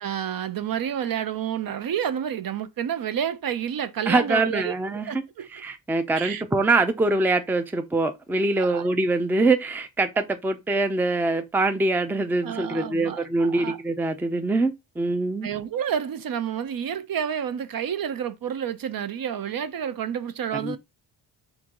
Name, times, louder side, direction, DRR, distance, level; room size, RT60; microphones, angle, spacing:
voice 1, 0.0-5.5 6.1-6.4 8.6-8.9 12.4-13.8 15.4-20.8, right 9 dB, 50° right, 0.6 m, -29 dB
voice 2, 4.1-5.1 5.5-15.5 20.6-20.8, right 2 dB, 5° right, 0.5 m, -24 dB
4.4 x 2.6 x 3.7 m
cardioid pair, 90°, 46 cm